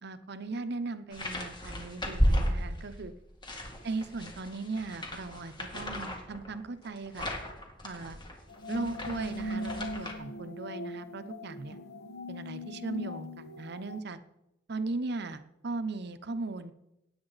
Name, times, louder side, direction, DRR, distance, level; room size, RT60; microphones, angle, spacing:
voice 1, 0.0-3.1 3.8-7.3 7.8-8.2 8.7-11.8 12.3-14.2 14.7-16.7, right 3 dB, 60° right, 11 dB, 0.8 m, -37 dB
sound 1, 1.1-3.0 3.4-10.1, equal, 25° left, 2.0 m, -34 dB
sound 2, 8.5-14.0, left 1 dB, 60° left, 1.3 m, -40 dB
17.5 x 8.8 x 4.0 m, 0.88 s
head